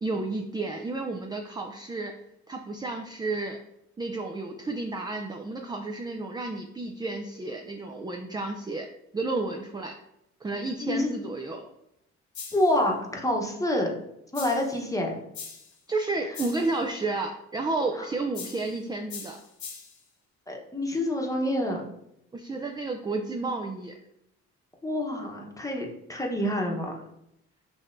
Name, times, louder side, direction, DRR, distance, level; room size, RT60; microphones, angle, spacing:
voice 1, 0.0-2.1 2.5-3.6 4.0-8.9 9.1-10.0 10.4-11.7 15.9-19.4 22.3-23.9, right 3 dB, 15° right, 3 dB, 0.4 m, -31 dB
sound 1, 12.3-12.8 14.3-14.8 15.3-15.8 16.3-16.8 18.3-18.8 19.1-20.0, left 6 dB, 65° left, 1.2 m, -41 dB
voice 2, 12.5-13.9 14.3-15.2 18.0-18.1 20.5-21.8 24.8-26.9, left 1 dB, 10° left, 0 dB, 1.0 m, -27 dB
6.2 x 3.0 x 2.6 m, 0.81 s
cardioid pair, 90°, 30 cm